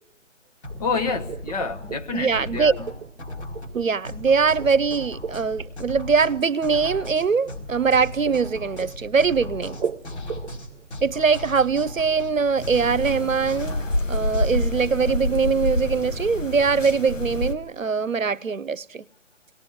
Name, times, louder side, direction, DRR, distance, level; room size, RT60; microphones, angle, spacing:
sound 1, 0.6-14.9, left 2 dB, 60° left, 4.9 m, -37 dB
sound 2, 0.7-11.2, right 6 dB, 50° right, 1.1 m, -38 dB
voice 1, 0.8-2.9, left 4 dB, 30° left, 1.2 m, -28 dB
voice 2, 2.1-2.7 3.7-9.8 11.0-19.0, right 5 dB, 85° right, 0.9 m, -22 dB
sound 3, 12.6-17.5, left 1 dB, 75° left, 1.6 m, -27 dB
23.5 x 18.5 x 9.3 m
figure-of-eight pair, 140°, 38 cm